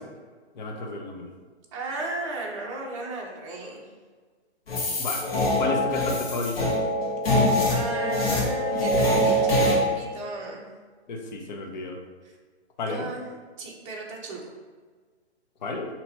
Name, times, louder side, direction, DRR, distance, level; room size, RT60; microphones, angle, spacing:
voice 1, 0.5-1.3 5.0-6.7 11.1-12.0 12.8-13.1 15.6-15.9, left 2 dB, 40° left, 2 dB, 0.7 m, -31 dB
voice 2, 1.7-3.9 7.6-10.6 12.2-12.3 12.9-13.2 13.6-14.4, right 2 dB, 30° right, -1 dB, 0.7 m, -35 dB
sound 1, 4.7-9.8, equal, 60° left, 1.3 m, -24 dB
5.6 x 2.9 x 2.7 m, 1.5 s
hypercardioid pair, 140°, 33 cm